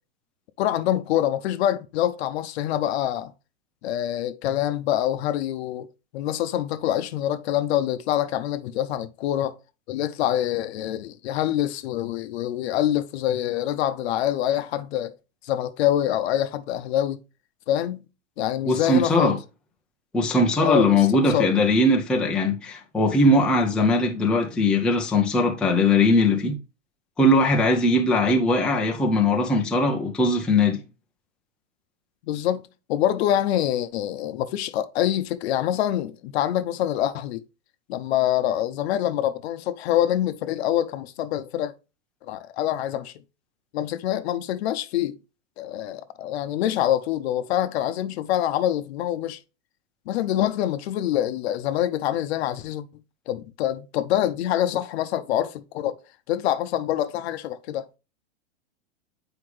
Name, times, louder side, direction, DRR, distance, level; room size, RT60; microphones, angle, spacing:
voice 1, 0.6-3.3 3.8-5.9 6.1-9.6 9.9-15.2 15.4-17.2 17.7-18.1 18.4-19.4 20.6-21.5 32.2-37.4 37.9-41.7 42.2-43.1 43.7-45.2 45.6-49.4 50.1-52.9 53.3-55.9 56.3-57.9, left 12 dB, 55° left, 0.8 m, -25 dB
voice 2, 18.7-19.4 20.1-26.6 27.2-30.8, left 2 dB, ahead, 0.5 m, -20 dB
7.8 x 4.9 x 3.2 m
supercardioid pair, 145°, 38 cm